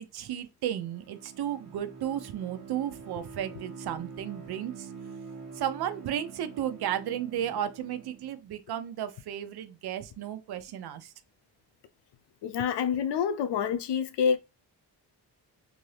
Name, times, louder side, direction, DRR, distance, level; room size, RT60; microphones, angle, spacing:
voice 1, 0.0-4.9 5.5-11.1 12.9-13.0, right 10 dB, 70° right, 0.6 m, -34 dB
Bowed string instrument, 0.6-8.4, right 5 dB, 40° right, 1.1 m, -46 dB
voice 2, 12.4-14.4, left 7 dB, 85° left, 0.6 m, -27 dB
2.7 x 2.6 x 3.1 m
cardioid pair, 120°, 40 cm